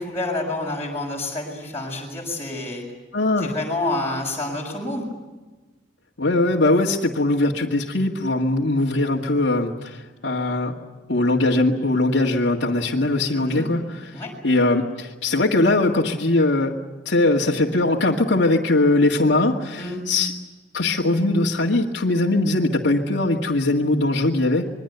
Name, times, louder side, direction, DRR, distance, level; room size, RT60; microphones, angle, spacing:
voice 1, 0.0-2.8 3.4-5.1 13.3-13.7 14.1-14.3 19.8-20.0, left 2 dB, 15° left, -3 dB, 6.6 m, -28 dB
voice 2, 3.1-3.5 6.2-10.8 11.1-16.8 17.1-20.3 20.7-24.7, left 2 dB, 75° left, -3 dB, 2.0 m, -21 dB
26.0 x 22.5 x 8.1 m, 1.2 s
head